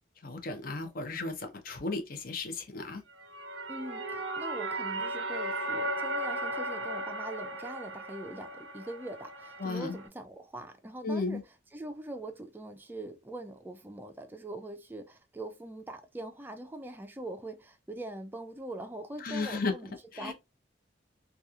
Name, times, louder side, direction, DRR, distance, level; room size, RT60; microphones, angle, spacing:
voice 1, 0.2-3.0 9.6-10.0 11.0-11.4 19.2-19.7 20.1-20.3, left 3 dB, 50° left, 0.6 m, -34 dB
sound 1, 3.1-10.1, right 1 dB, 80° right, 0.4 m, -36 dB
voice 2, 3.7-20.3, right 1 dB, 10° right, 0.3 m, -42 dB
2.9 x 2.3 x 2.3 m
head